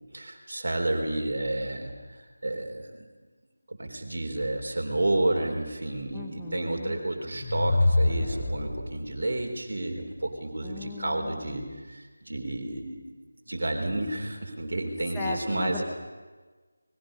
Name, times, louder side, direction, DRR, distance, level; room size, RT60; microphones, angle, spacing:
voice 1, 0.1-3.1 3.7-13.0 13.5-15.8, right 1 dB, 50° right, 3 dB, 3.8 m, -31 dB
voice 2, 6.1-7.0 10.6-11.8 15.1-15.8, left 3 dB, 5° left, -3 dB, 1.1 m, -37 dB
sound 1, 7.2-9.2, left 2 dB, 35° left, 4.1 m, -26 dB
30.0 x 21.0 x 5.4 m, 1.4 s
figure-of-eight pair, 165°, 0 cm